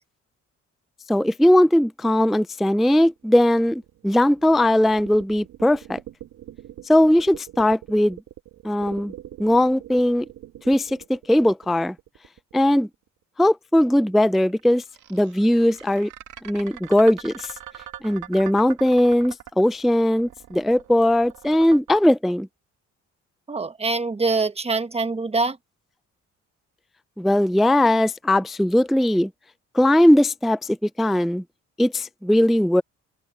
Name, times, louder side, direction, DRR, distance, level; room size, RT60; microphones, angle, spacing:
voice 1, 1.1-6.0 6.8-8.2 8.6-9.1 9.4-10.3 10.7-12.0 12.5-12.9 13.4-14.8 15.1-16.1 16.4-17.5 18.0-22.5 27.2-29.3 29.7-31.4 31.8-32.8, left 1 dB, ahead, 0.3 m, -19 dB
sound 1, 3.2-13.1 14.4-22.1, right 11 dB, 75° right, 2.4 m, -43 dB
voice 2, 23.5-25.6, right 3 dB, 20° right, 1.4 m, -24 dB
open air
cardioid pair, 90°, 30 cm